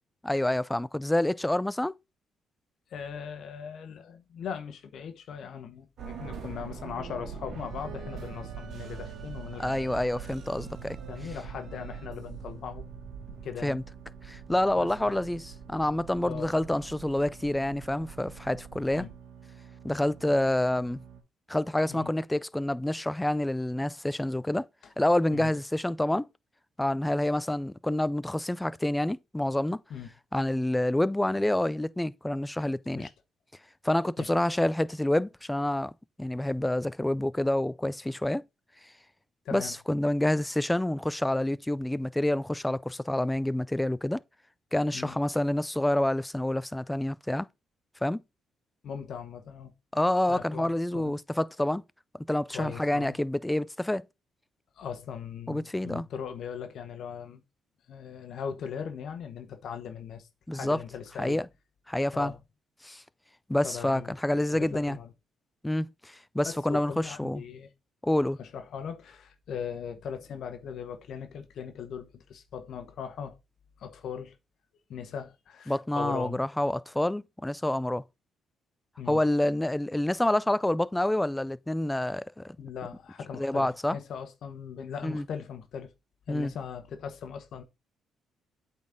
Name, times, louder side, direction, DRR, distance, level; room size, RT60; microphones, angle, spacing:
voice 1, 0.2-1.9 9.6-11.0 13.6-13.8 14.2-19.1 19.8-21.0 21.5-24.6 25.0-26.3 26.8-29.8 30.3-33.1 33.8-35.9 36.2-38.4 39.5-44.2 44.7-47.5 48.0-48.2 49.9-51.8 52.2-54.0 55.5-56.1 60.5-60.8 61.2-61.5 61.9-62.3 62.8-63.0 63.5-65.0 65.6-67.4 68.0-68.4 75.7-78.0 79.1-82.6 83.4-84.0 85.0-85.2 86.3-86.5, left 1 dB, 10° left, 0.4 m, -28 dB
voice 2, 2.9-9.7 11.1-12.8 13.4-13.8 14.8-15.1 16.2-16.5 18.9-19.1 21.9-22.1 25.3-25.5 29.9-30.1 32.9-33.1 34.2-34.3 39.4-39.7 44.9-45.2 48.8-49.7 50.3-51.1 52.5-53.2 54.8-57.4 57.9-61.4 62.1-62.4 63.6-64.1 64.5-65.1 66.4-67.7 68.4-73.4 73.8-74.3 74.9-76.4 79.0-79.2 82.6-85.9 86.3-87.6, left 7 dB, 65° left, 1.0 m, -39 dB
sound 1, 6.0-21.2, right 6 dB, 65° right, 1.7 m, -43 dB
8.2 x 4.1 x 3.6 m
cardioid pair, 90°, 0 cm